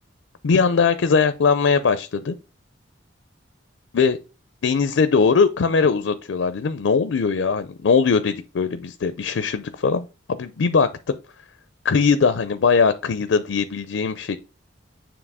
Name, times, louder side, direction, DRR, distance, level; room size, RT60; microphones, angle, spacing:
voice 1, 0.4-2.3 3.9-4.2 4.6-11.1 11.8-14.4, left 5 dB, 75° left, 0.4 m, -20 dB
7.3 x 3.0 x 4.8 m
head